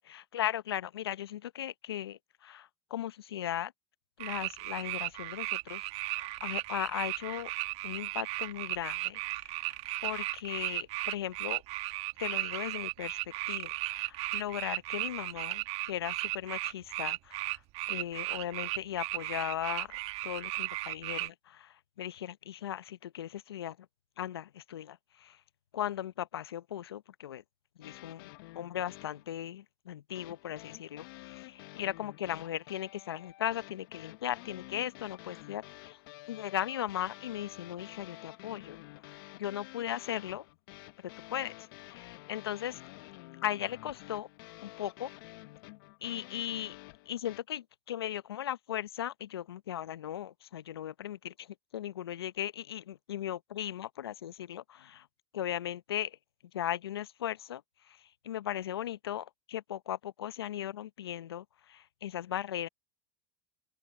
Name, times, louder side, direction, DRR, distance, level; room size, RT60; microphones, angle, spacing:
voice 1, 0.0-3.7 4.2-7.5 7.8-11.6 12.2-17.6 17.9-20.0 20.2-23.8 24.2-25.4 25.7-27.4 27.8-36.0 36.3-38.8 39.3-40.4 41.0-42.8 43.4-44.3 44.6-45.1 46.0-46.8 47.1-51.5 51.7-55.1 55.3-56.2 56.5-57.6 57.9-62.7, left 11 dB, 80° left, 0.9 m, -38 dB
sound 1, 4.2-21.3, right 20 dB, 55° right, 1.9 m, -36 dB
sound 2, 27.8-29.3 30.1-47.4, left 22 dB, 65° left, 1.3 m, -50 dB
open air
hypercardioid pair, 80°, 13 cm